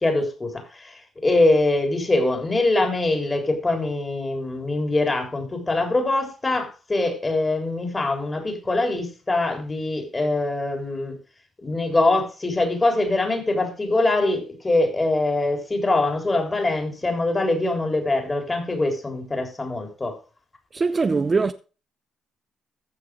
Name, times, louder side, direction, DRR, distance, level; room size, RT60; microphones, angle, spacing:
voice 1, 0.0-11.2 11.6-20.2, left 2 dB, 25° left, 3.6 m, -23 dB
voice 2, 20.7-21.5, right 4 dB, 30° right, 0.6 m, -21 dB
14.5 x 6.5 x 4.9 m
cardioid pair, 90°, 0 cm